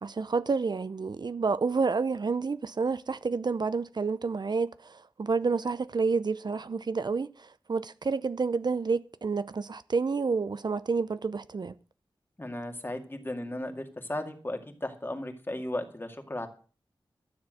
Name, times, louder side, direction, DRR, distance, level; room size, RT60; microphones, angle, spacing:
voice 1, 0.0-11.7, right 4 dB, 55° right, 0.6 m, -29 dB
voice 2, 12.4-16.5, left 1 dB, 25° left, 2.2 m, -35 dB
13.0 x 7.3 x 7.7 m
wide cardioid pair, 95°, 9 cm